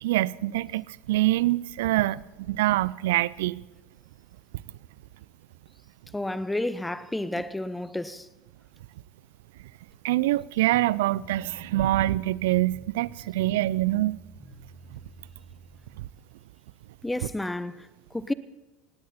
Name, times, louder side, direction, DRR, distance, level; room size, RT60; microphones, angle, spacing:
voice 1, 0.0-2.2 2.5-3.6 10.0-14.2, right 16 dB, 70° right, 0.4 m, -25 dB
voice 2, 6.1-8.3 17.0-18.3, left 1 dB, 10° left, 0.9 m, -31 dB
sound 1, 10.7-16.0, right 2 dB, 15° right, 5.9 m, -49 dB
18.5 x 16.5 x 4.3 m
hypercardioid pair, 75°, 0 cm